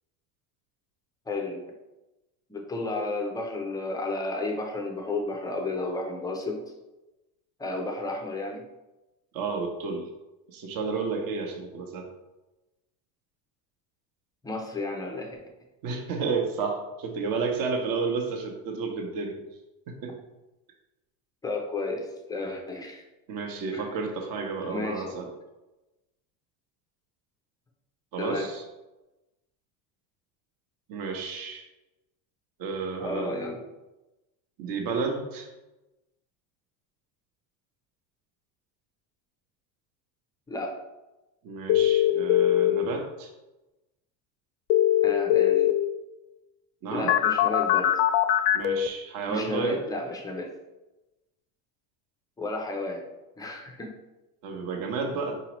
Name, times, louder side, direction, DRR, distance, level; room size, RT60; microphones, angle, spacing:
voice 1, 1.3-1.6 2.5-6.7 7.6-8.6 14.4-15.4 21.4-23.0 23.7-23.9 24.6-25.2 28.2-28.5 33.0-33.6 40.5-40.8 45.0-45.7 46.9-47.9 49.3-50.5 52.4-53.0 53.4-53.9, left 2 dB, 10° left, 1 dB, 0.4 m, -32 dB
voice 2, 9.3-10.1 10.5-12.1 15.8-19.4 20.0-20.1 23.3-25.3 28.1-28.6 30.9-31.7 32.6-33.4 34.6-35.5 41.4-43.3 46.8-47.1 48.5-49.8 54.4-55.3, right 4 dB, 45° right, 2 dB, 0.8 m, -31 dB
sound 1, 41.7-42.7 44.7-45.7 47.1-48.9, left 12 dB, 60° left, 0.5 m, -21 dB
5.0 x 2.8 x 3.0 m, 1.0 s
supercardioid pair, 110°, 49 cm